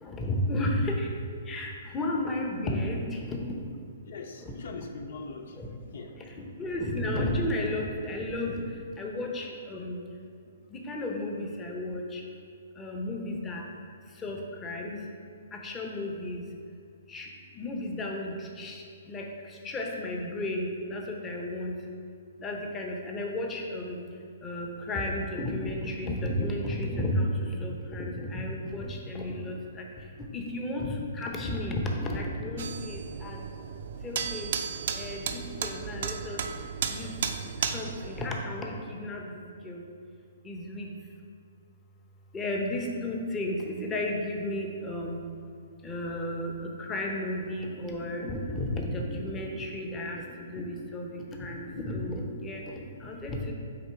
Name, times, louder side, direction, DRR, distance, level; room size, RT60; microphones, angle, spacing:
voice 1, 0.0-1.1 1.5-3.5 5.6-5.7 6.6-8.5 9.0-10.0 10.7-12.2 12.8-13.6 14.2-15.0 15.6-16.4 17.1-17.3 17.6-18.8 19.1-19.2 19.6-21.7 22.4-24.0 24.4-29.5 30.3-33.4 34.0-34.5 34.9-36.4 36.9-37.1 37.7-39.8 40.4-40.9 42.3-45.2 45.8-46.5 46.8-50.2 50.5-52.6 53.0-53.5, left 1 dB, 15° left, 0 dB, 0.8 m, -33 dB
voice 2, 4.1-6.2, left 4 dB, 65° left, 5 dB, 0.4 m, -42 dB
sound 1, 32.6-38.3, right 6 dB, 65° right, 0.5 m, -34 dB
7.9 x 3.0 x 4.6 m, 2.2 s
hypercardioid pair, 145°, 0 cm